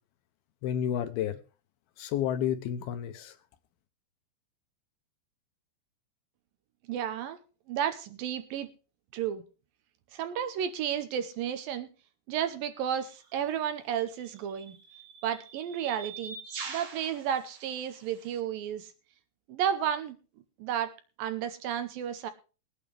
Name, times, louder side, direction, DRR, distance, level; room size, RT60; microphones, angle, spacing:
voice 1, 0.6-1.4 2.0-3.4, left 10 dB, 75° left, 2.5 m, -30 dB
voice 2, 6.9-7.4 7.7-8.7 9.1-9.4 10.1-11.9 12.3-14.8 15.2-16.4 16.7-18.9 19.5-20.2 20.6-20.9 21.2-22.3, right 9 dB, 75° right, 2.2 m, -32 dB
sound 1, 13.0-13.2 14.2-18.4, right 5 dB, 50° right, 2.2 m, -44 dB
21.0 x 8.7 x 3.3 m
omnidirectional pair, 4.9 m